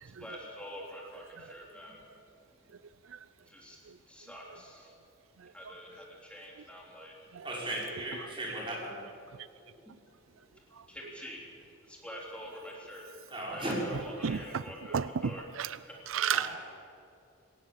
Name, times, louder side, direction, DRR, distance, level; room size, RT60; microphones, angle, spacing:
voice 1, 0.2-2.0 3.5-3.8 4.1-4.9 5.5-7.1 10.9-11.4 11.9-13.0 13.5-15.4, equal, 5° left, -3 dB, 3.3 m, -46 dB
voice 2, 7.4-9.0 13.3-13.8 16.3-16.6, right 1 dB, 25° right, -4 dB, 6.0 m, -36 dB
voice 3, 13.9-14.6 14.9-15.8 16.1-16.6, right 7 dB, 80° right, 15 dB, 0.5 m, -32 dB
20.0 x 18.5 x 7.6 m, 2.6 s
head